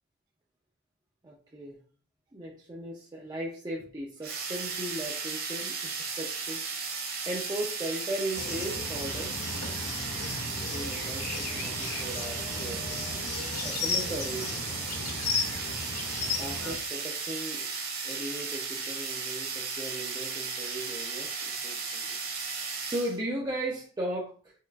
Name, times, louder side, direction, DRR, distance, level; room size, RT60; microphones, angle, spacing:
voice 1, 1.2-1.8 2.3-5.9 6.2-6.6 7.3-9.3 10.5-14.6 16.4-17.7 18.0-22.4 22.8-24.5, right 1 dB, 15° right, -3 dB, 0.4 m, -37 dB
sound 1, 4.2-23.2, right 5 dB, 45° right, 0.8 m, -35 dB
sound 2, 8.3-16.8, left 4 dB, 75° left, 0.7 m, -35 dB
4.5 x 2.4 x 2.2 m, 0.39 s
head